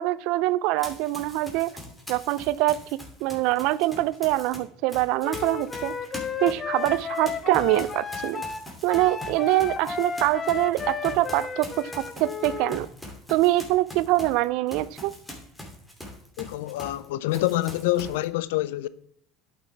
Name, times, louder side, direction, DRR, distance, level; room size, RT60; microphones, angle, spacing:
voice 1, 0.0-1.7 2.1-2.8 3.2-5.9 6.4-8.4 8.8-12.9 13.3-15.1, right 17 dB, 65° right, 0.4 m, -24 dB
Run, 0.8-4.6 4.9-17.0 17.3-18.2, left 1 dB, 5° left, 2.7 m, -42 dB
Wind instrument woodwind instrument, 5.2-12.8, left 6 dB, 30° left, 0.8 m, -33 dB
voice 2, 16.4-18.9, left 16 dB, 80° left, 0.4 m, -26 dB
11.0 x 6.1 x 3.3 m
hypercardioid pair, 85°, 0 cm